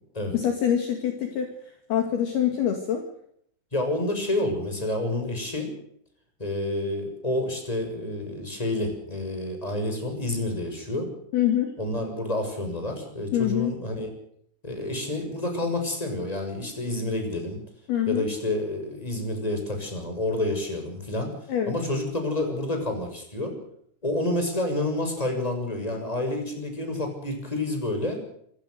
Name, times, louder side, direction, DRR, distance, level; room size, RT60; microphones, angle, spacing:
voice 1, 0.3-1.5 1.9-3.0 11.3-11.7 13.3-13.8 17.9-18.3 21.5-21.8, left 10 dB, 60° left, 5 dB, 3.8 m, -25 dB
voice 2, 3.7-5.7 6.4-11.1 11.8-14.1 14.6-17.6 18.1-21.3 21.7-23.5 24.0-28.2, left 1 dB, 5° left, 5 dB, 6.3 m, -29 dB
26.0 x 17.0 x 6.6 m, 0.68 s
omnidirectional pair, 5.6 m